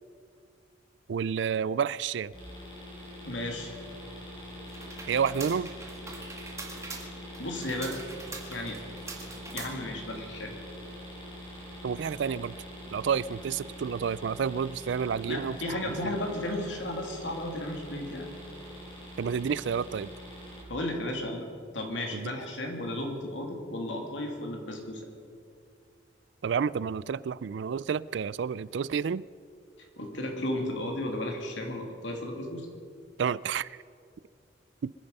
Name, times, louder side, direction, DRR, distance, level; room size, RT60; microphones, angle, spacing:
voice 1, 1.1-2.3 5.1-5.7 11.8-12.6 12.9-15.6 19.2-20.1 22.1-22.3 26.4-29.3 33.2-33.8 34.8-34.9, right 7 dB, 70° right, 20 dB, 0.3 m, -30 dB
sound 1, 2.3-20.6, equal, 25° left, 5.1 m, -44 dB
voice 2, 3.2-3.7 6.4-6.5 7.4-8.0 8.5-8.8 9.5-10.5 15.3-18.3 20.7-21.4 21.7-25.1 30.0-32.7, left 1 dB, 80° left, 2 dB, 2.8 m, -34 dB
sound 2, 4.7-10.2, right 3 dB, 15° right, 1.9 m, -43 dB
25.0 x 10.5 x 5.4 m, 2.3 s
head